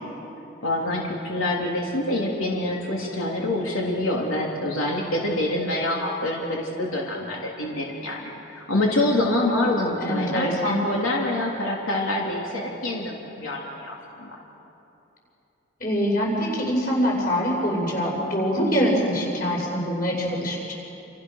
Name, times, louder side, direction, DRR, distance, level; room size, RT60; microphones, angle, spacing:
voice 1, 0.6-14.4, left 1 dB, 85° left, -2 dB, 3.3 m, -26 dB
voice 2, 10.0-10.7 15.8-20.7, equal, 45° left, -2 dB, 7.3 m, -24 dB
29.0 x 28.0 x 6.6 m, 3.0 s
head